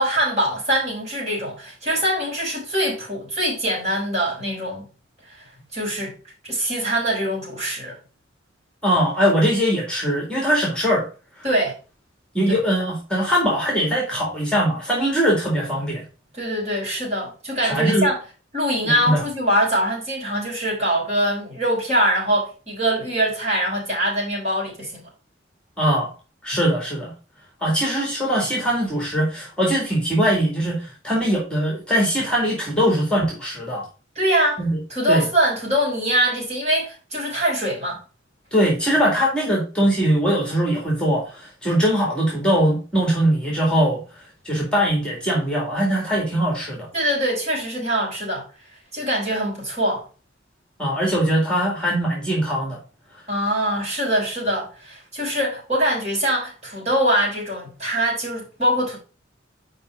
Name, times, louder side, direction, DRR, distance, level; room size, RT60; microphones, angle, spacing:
voice 1, 0.0-4.9 5.7-6.1 6.4-8.0 11.4-11.7 12.5-12.6 16.3-18.1 18.5-25.0 34.1-34.6 34.9-38.0 46.9-48.4 48.9-50.0 53.3-59.0, right 1 dB, 35° right, 4.5 m, -23 dB
voice 2, 8.8-11.1 12.3-16.0 17.6-18.1 18.8-19.2 25.8-26.1 26.4-27.1 27.6-33.9 34.6-34.8 35.1-35.3 38.5-44.0 44.4-46.9 50.8-52.8, equal, 5° left, 2.1 m, -21 dB
5.8 x 5.1 x 5.0 m
head